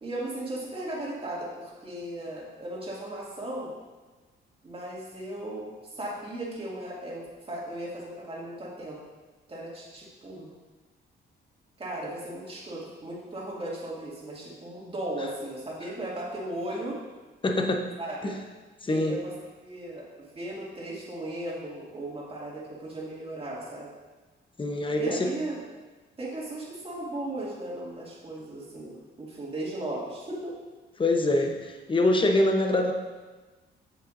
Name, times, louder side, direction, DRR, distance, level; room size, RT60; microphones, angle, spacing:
voice 1, 0.0-3.7 4.6-9.0 9.5-10.5 11.8-17.0 18.0-18.3 18.9-19.3 19.6-23.9 24.9-25.6 26.2-30.5, right 1 dB, 30° right, -5 dB, 2.2 m, -36 dB
voice 2, 17.4-17.8 18.2-18.3 18.8-19.2 24.6-25.3 31.0-32.9, left 1 dB, 25° left, 3 dB, 0.9 m, -24 dB
7.9 x 7.2 x 2.6 m, 1.3 s
cardioid pair, 90°, 20 cm